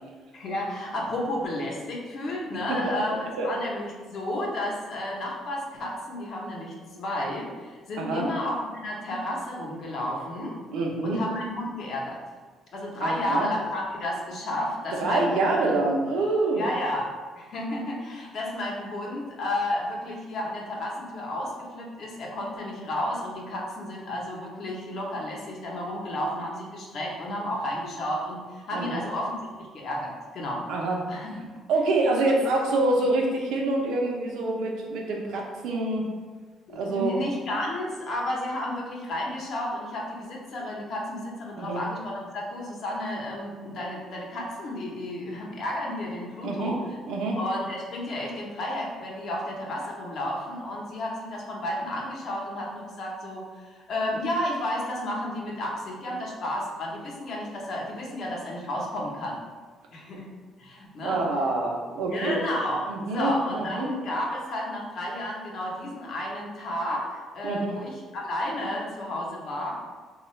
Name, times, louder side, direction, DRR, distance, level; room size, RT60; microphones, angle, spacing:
voice 1, 0.3-10.6 11.0-12.2 12.7-15.5 16.5-29.3 29.7-30.7 31.1-31.5 36.7-47.0 47.4-59.4 59.9-60.3 60.6-61.2 62.0-69.7, left 1 dB, 55° left, -2 dB, 0.8 m, -32 dB
voice 2, 10.7-11.2 13.0-13.5 15.0-16.7 28.7-29.0 30.7-31.0 31.7-36.1 36.7-37.2 41.6-41.8 46.4-46.7 47.1-47.4 61.0-62.5 62.9-63.9 67.4-67.7, right 2 dB, 85° right, -1 dB, 0.6 m, -26 dB
3.6 x 2.3 x 3.1 m, 1.4 s
cardioid pair, 130°, 0 cm